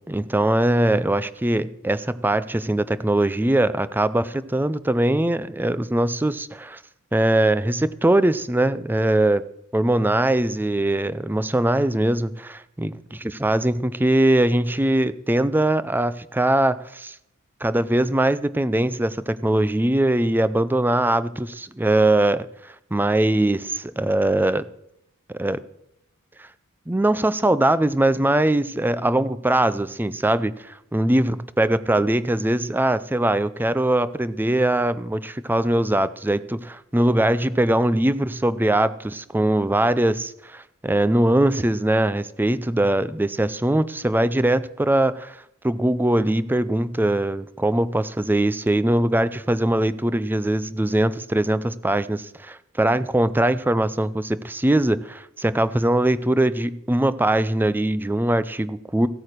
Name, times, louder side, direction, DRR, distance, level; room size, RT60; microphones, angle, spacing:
voice 1, 0.1-6.8 7.1-9.4 9.7-17.1 17.6-24.7 25.4-25.6 26.9-59.1, right 1 dB, 10° right, 15 dB, 0.4 m, -21 dB
15.5 x 8.7 x 6.6 m, 0.78 s
head